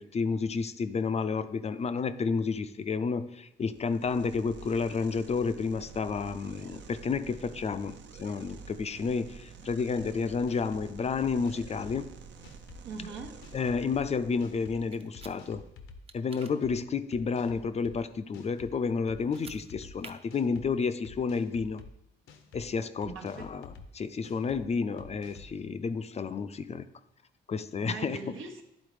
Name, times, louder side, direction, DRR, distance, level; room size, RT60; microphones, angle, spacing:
voice 1, 0.0-12.1 13.5-15.6 16.1-21.8 22.5-23.7 23.9-26.9 27.5-28.2, left 5 dB, 35° left, 11 dB, 0.4 m, -31 dB
sound 1, 3.7-15.1, right 5 dB, 65° right, 0.7 m, -49 dB
sound 2, 10.0-10.1 10.5-10.9 11.2-12.1 12.4-12.8 13.2-14.0 14.4-14.8 15.1-16.0 16.4-16.7 17.1-18.0 18.3-18.7 19.1-19.9 20.3-20.7 21.0-21.9 22.3-22.6 23.0-23.9 24.2-24.6 25.0-25.5, left 6 dB, 85° left, 0.8 m, -49 dB
voice 2, 12.8-13.4 23.1-23.5 27.8-28.6, right 4 dB, 80° right, 3 dB, 1.0 m, -41 dB
sound 3, 14.9-15.3 16.1-16.5 19.2-19.6 20.0-20.1, right 4 dB, 30° right, 0.6 m, -48 dB
9.8 x 3.8 x 4.8 m, 0.84 s
cardioid pair, 90°, 20 cm